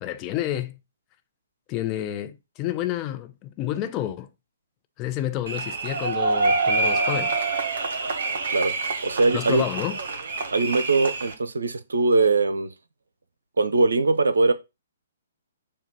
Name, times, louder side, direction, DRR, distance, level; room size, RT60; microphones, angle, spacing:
voice 1, 0.0-0.8 1.7-4.3 5.0-7.4 9.3-10.0, left 12 dB, 25° left, 0.8 m, -29 dB
sound 1, 5.5-11.3, right 3 dB, 55° right, 1.4 m, -26 dB
voice 2, 9.0-9.6 10.5-12.7 13.6-14.5, right 3 dB, 70° right, 0.8 m, -21 dB
7.4 x 2.5 x 5.5 m
figure-of-eight pair, 125°, 0 cm